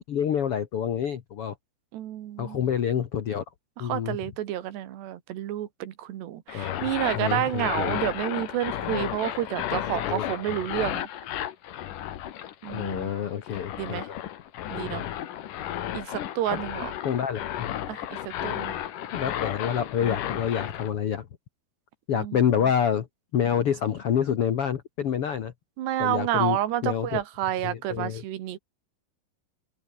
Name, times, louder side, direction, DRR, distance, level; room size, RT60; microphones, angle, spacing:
voice 1, 0.0-1.5 2.4-3.4 3.8-4.2 6.5-8.0 9.9-10.6 12.7-14.2 14.8-15.1 16.2-16.6 17.0-17.7 19.1-21.3 22.1-23.1 23.3-25.5 26.0-27.2 27.6-28.2, left 8 dB, 80° left, 1.2 m, -28 dB
voice 2, 1.9-2.6 3.8-11.1 12.6-13.1 13.8-14.1 14.7-15.0 15.9-16.9 17.9-18.7 22.1-22.4 25.8-28.6, right 12 dB, 85° right, 3.9 m, -30 dB
sound 1, 6.5-20.9, left 11 dB, 60° left, 2.7 m, -33 dB
open air
omnidirectional pair, 4.8 m